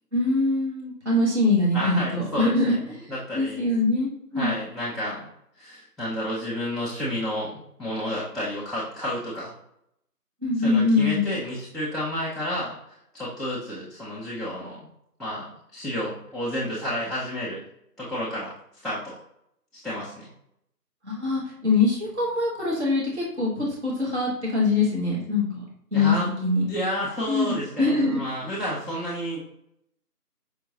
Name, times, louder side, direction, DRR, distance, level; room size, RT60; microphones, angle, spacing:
voice 1, 0.1-4.6 10.4-11.3 21.0-25.6 25.9-26.6 27.3-28.2 28.4-28.5, left 3 dB, 45° right, -4 dB, 1.0 m, -23 dB
voice 2, 1.7-2.8 3.1-3.6 4.3-5.3 5.6-9.5 10.6-14.9 15.2-17.6 18.0-18.5 18.8-19.1 19.7-20.3 25.9-26.3 26.7-29.4, equal, ahead, -9 dB, 0.5 m, -31 dB
5.2 x 2.4 x 2.6 m, 0.76 s
figure-of-eight pair, 175°, 48 cm